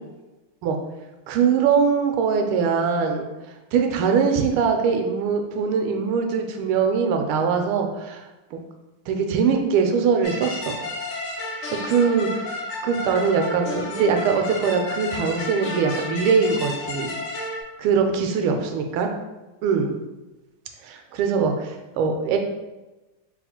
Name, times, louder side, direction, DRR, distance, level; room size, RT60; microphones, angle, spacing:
voice 1, 1.3-3.3 3.7-8.2 8.5-8.6 9.1-10.8 11.7-12.5 12.8-17.1 17.8-19.1 19.6-19.9 20.8-22.4, right 6 dB, 90° right, 4 dB, 1.4 m, -22 dB
sound 1, 10.2-17.6, left 2 dB, 80° left, 1.6 m, -31 dB
3.9 x 2.3 x 4.3 m, 1.1 s
omnidirectional pair, 2.3 m